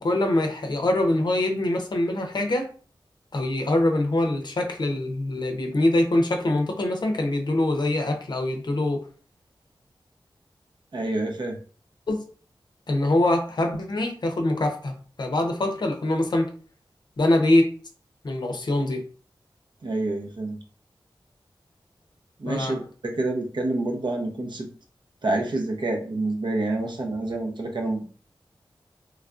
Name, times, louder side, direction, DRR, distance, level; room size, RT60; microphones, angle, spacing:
voice 1, 0.0-2.7 3.3-9.1 12.1-12.2 12.9-16.5 17.2-17.7 18.2-19.1 22.5-22.8, left 1 dB, 55° left, 4 dB, 0.5 m, -24 dB
voice 2, 10.9-11.6 19.8-20.6 22.4-24.7 25.2-28.1, right 2 dB, 60° right, 2 dB, 0.7 m, -27 dB
3.2 x 2.4 x 2.4 m, 0.41 s
wide cardioid pair, 75°, 9 cm